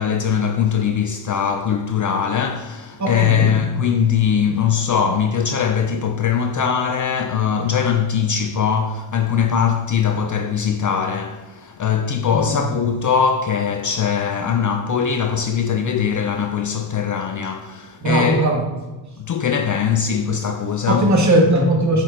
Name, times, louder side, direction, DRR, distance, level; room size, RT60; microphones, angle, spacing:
voice 1, 0.0-18.5 19.2-21.1, left 7 dB, 40° left, 0.4 m, -21 dB
voice 2, 3.0-3.6 12.3-12.7 18.0-18.7 20.9-22.0, right 1 dB, 35° right, 1.6 m, -18 dB
5.8 x 4.9 x 3.8 m
cardioid pair, 95°, 48 cm